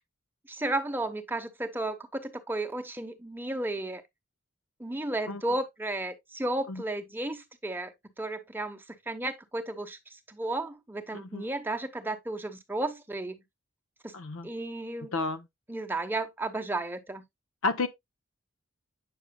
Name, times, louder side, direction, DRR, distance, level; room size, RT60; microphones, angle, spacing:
voice 1, 0.5-4.0 4.8-8.8 9.1-10.0 10.3-13.4 14.0-14.1 14.4-15.1 15.7-17.2, right 2 dB, 10° right, 0.9 m, -33 dB
voice 2, 14.1-14.5 15.1-15.4 17.6-17.9, left 3 dB, 75° left, 0.7 m, -30 dB
8.6 x 6.3 x 2.2 m
head